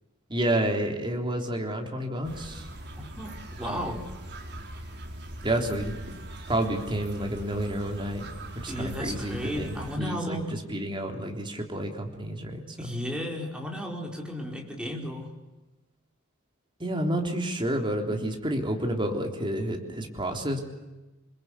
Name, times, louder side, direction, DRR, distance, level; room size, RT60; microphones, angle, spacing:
voice 1, 0.3-2.7 3.6-4.0 5.4-5.9 6.5-8.3 8.5-10.4 10.7-12.9 16.8-20.6, right 1 dB, 25° right, 2 dB, 3.6 m, -30 dB
sound 1, 2.2-10.0, right 1 dB, 55° right, 4.8 m, -41 dB
voice 2, 3.0-4.1 8.7-10.7 12.8-15.3, equal, 5° right, 0 dB, 5.0 m, -34 dB
28.5 x 22.0 x 8.3 m, 1.1 s
head